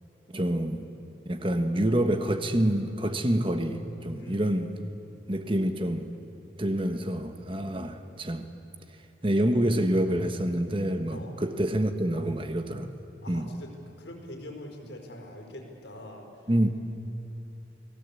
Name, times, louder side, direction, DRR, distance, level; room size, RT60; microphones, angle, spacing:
voice 1, 0.3-0.9 1.2-4.7 5.3-6.2 6.6-8.5 9.2-12.9 13.3-13.5 16.5-16.7, right 1 dB, 30° right, 8 dB, 1.4 m, -27 dB
voice 2, 4.1-4.5 11.1-11.3 13.2-16.3, left 1 dB, 90° left, 2 dB, 4.9 m, -43 dB
29.0 x 20.0 x 8.6 m, 2.8 s
head